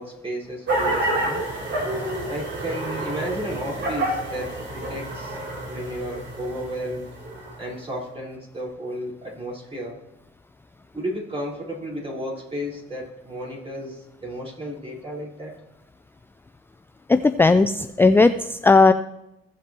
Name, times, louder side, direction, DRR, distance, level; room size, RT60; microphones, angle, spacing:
voice 1, 0.0-1.4 2.3-5.4 5.6-7.1 7.6-10.0 10.9-15.5, equal, 30° right, -4 dB, 4.5 m, -33 dB
sound 1, 0.7-7.7, right 1 dB, 65° right, 3.1 m, -29 dB
voice 2, 17.1-18.9, left 3 dB, 10° left, 10 dB, 0.3 m, -16 dB
16.0 x 7.4 x 3.0 m, 0.88 s
cardioid pair, 90°, 20 cm